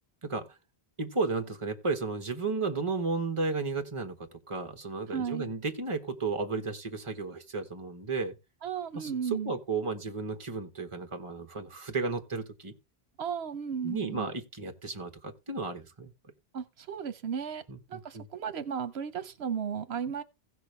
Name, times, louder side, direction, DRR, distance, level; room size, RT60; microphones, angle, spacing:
voice 1, 0.2-0.6 1.0-8.3 8.9-12.7 13.8-16.1 17.7-18.3, right 3 dB, 30° right, 1.4 m, -33 dB
voice 2, 5.1-5.5 8.6-9.6 13.2-14.3 16.5-17.6 17.9-20.2, right 7 dB, 80° right, 1.0 m, -34 dB
16.0 x 6.2 x 3.3 m
omnidirectional pair, 1.1 m